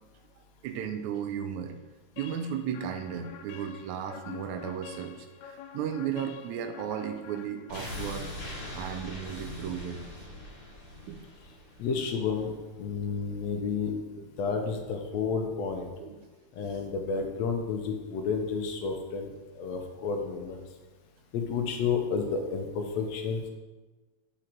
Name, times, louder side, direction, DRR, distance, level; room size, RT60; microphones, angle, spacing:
voice 1, 0.6-1.8 2.2-8.3 8.8-10.0 11.1-11.3 11.8-12.0 14.2-14.3 16.0-16.2, right 8 dB, 85° right, 7 dB, 2.0 m, -35 dB
sound 1, 2.2-8.0, left 8 dB, 90° left, 2.0 m, -47 dB
sound 2, 7.7-12.6 12.9-13.0, left 1 dB, 35° left, 1.0 m, -41 dB
voice 2, 11.8-15.9 16.5-20.6 21.3-23.5, left 5 dB, 70° left, 3 dB, 1.9 m, -31 dB
8.5 x 5.1 x 4.5 m, 1.2 s
omnidirectional pair, 3.3 m